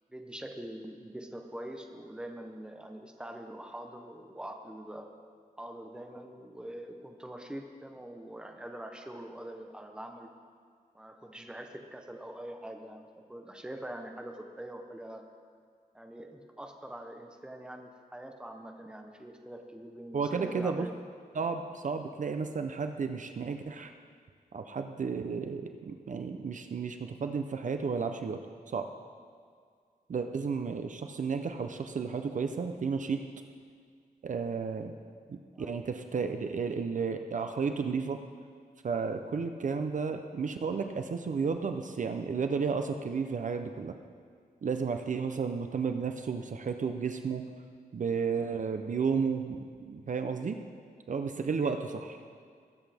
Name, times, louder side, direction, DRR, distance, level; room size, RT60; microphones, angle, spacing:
voice 1, 0.1-5.1 5.6-10.3 10.9-15.2 15.9-21.0 35.5-35.7 51.6-51.8, right 1 dB, 5° right, 3 dB, 0.8 m, -44 dB
voice 2, 20.1-20.9 21.3-23.9 24.5-28.4 28.7-28.9 30.1-33.2 34.2-34.9 35.3-38.2 38.8-43.9 44.6-47.4 47.9-50.6 51.1-51.8, right 5 dB, 55° right, 6 dB, 0.6 m, -32 dB
20.0 x 8.0 x 3.5 m, 2.1 s
wide cardioid pair, 170°, 16 cm